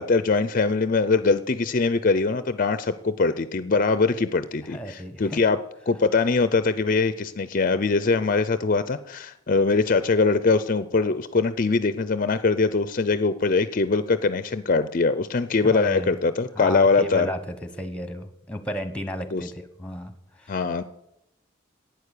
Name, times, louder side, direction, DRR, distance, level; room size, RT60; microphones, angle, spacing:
voice 1, 0.0-5.6 5.9-17.3 19.3-19.4 20.5-20.8, left 4 dB, 40° left, 13 dB, 0.5 m, -22 dB
voice 2, 4.7-5.4 15.6-16.2 16.5-20.6, equal, 5° left, 10 dB, 1.1 m, -33 dB
11.5 x 9.1 x 8.3 m, 0.85 s
head